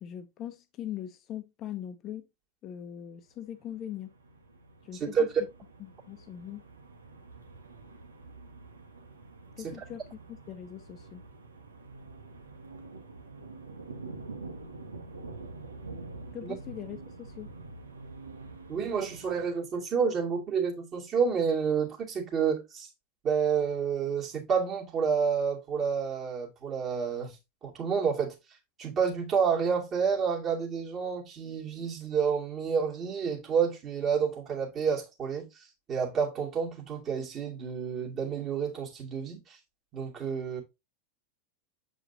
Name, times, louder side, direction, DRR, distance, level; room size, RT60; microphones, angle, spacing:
voice 1, 0.0-2.3 2.6-4.1 4.8-5.3 5.8-6.6 9.6-10.0 10.3-11.2 16.3-17.5, left 10 dB, 35° left, 1.0 m, -41 dB
sound 1, 3.6-19.5, right 3 dB, 75° right, 1.3 m, -46 dB
voice 2, 18.7-22.9 23.2-28.4 28.8-39.6 39.9-40.6, right 6 dB, 30° right, 2.5 m, -29 dB
7.7 x 4.9 x 2.7 m
figure-of-eight pair, 90°, 0 cm